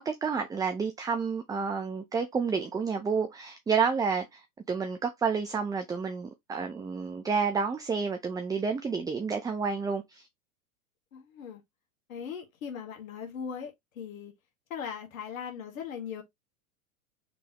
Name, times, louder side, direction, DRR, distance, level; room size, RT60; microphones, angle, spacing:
voice 1, 0.0-10.3, right 5 dB, 10° right, 0.4 m, -30 dB
voice 2, 11.1-11.6 12.1-14.3 14.7-16.2, left 7 dB, 75° left, 2.0 m, -39 dB
5.2 x 3.4 x 2.9 m
hypercardioid pair, 100°, 41 cm